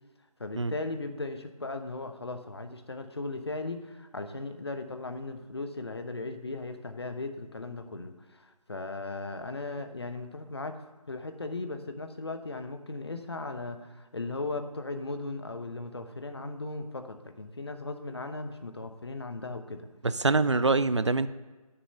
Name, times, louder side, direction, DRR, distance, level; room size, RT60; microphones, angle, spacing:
voice 1, 0.4-10.8 11.1-19.8, left 3 dB, 45° left, 8 dB, 0.9 m, -37 dB
voice 2, 20.0-21.3, right 3 dB, 50° right, 14 dB, 0.4 m, -24 dB
8.5 x 7.0 x 6.7 m, 1.2 s
figure-of-eight pair, 165°, 19 cm